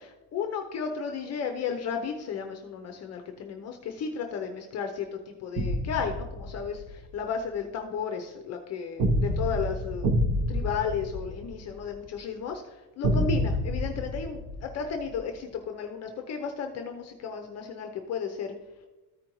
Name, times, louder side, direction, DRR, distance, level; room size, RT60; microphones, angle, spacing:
voice 1, 0.0-18.5, left 6 dB, 40° left, 4 dB, 0.6 m, -34 dB
sound 1, 5.6-6.9 9.0-12.0 13.0-15.2, equal, 45° right, 0.9 m, -28 dB
14.0 x 5.1 x 3.0 m, 1.2 s
cardioid pair, 165°, 40 cm